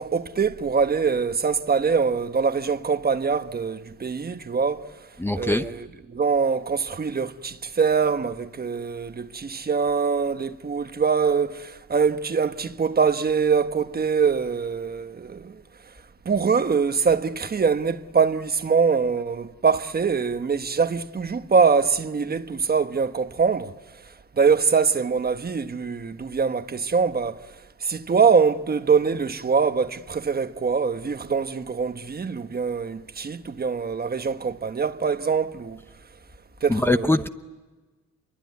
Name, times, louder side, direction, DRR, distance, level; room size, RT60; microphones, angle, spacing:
voice 1, 0.0-4.9 5.4-15.6 16.2-23.7 24.3-27.5 27.8-35.8 36.6-37.2, right 5 dB, 30° right, 1.1 m, -23 dB
voice 2, 5.2-5.7 36.7-37.3, left 1 dB, 10° left, 0.8 m, -22 dB
26.5 x 23.0 x 9.5 m
cardioid pair, 90°, 30 cm